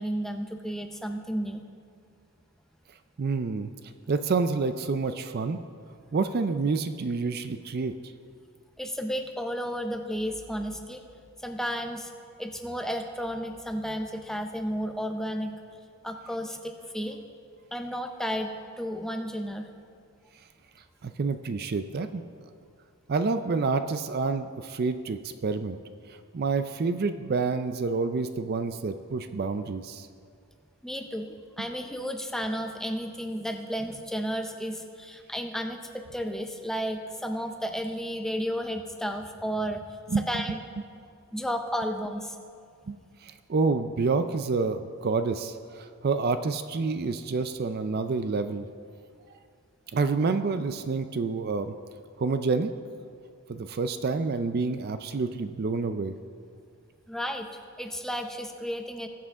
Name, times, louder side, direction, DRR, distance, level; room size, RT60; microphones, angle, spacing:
voice 1, 0.0-1.6 8.8-11.0 11.4-12.1 12.4-15.6 16.0-17.3 17.7-19.7 30.8-40.6 41.3-42.4 57.1-57.5 57.8-59.1, equal, ahead, 5 dB, 0.6 m, -33 dB
voice 2, 3.2-3.7 4.1-5.6 6.1-7.9 21.0-22.2 23.1-25.8 26.3-30.1 40.1-40.3 42.9-43.0 43.2-48.7 49.9-51.7 52.2-52.7 53.5-56.1, right 4 dB, 45° right, 10 dB, 0.4 m, -28 dB
19.5 x 7.5 x 3.6 m, 2.3 s
head